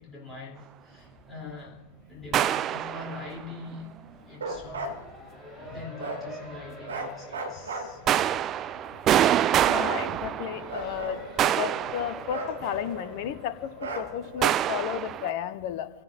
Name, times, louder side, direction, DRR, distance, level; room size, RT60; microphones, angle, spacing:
voice 1, 0.0-1.8 2.1-3.9 4.2-5.0 5.5-8.0, left 3 dB, 15° left, -3 dB, 3.2 m, -43 dB
Race car auto racing, 0.9-14.9, equal, 10° right, 4.1 m, -47 dB
sound 1, 2.3-3.4 8.1-10.9 11.4-12.7 14.4-15.3, right 11 dB, 30° right, 0.4 m, -26 dB
Bark, 4.3-5.0 6.0-6.3 6.8-8.3 9.1-10.2 10.7-11.8 12.3-13.3 13.8-14.5, right 2 dB, 70° right, 2.5 m, -37 dB
voice 2, 9.7-15.9, left 10 dB, 45° left, 11 dB, 1.1 m, -33 dB
27.5 x 16.5 x 2.6 m, 0.97 s
figure-of-eight pair, 90°, 0 cm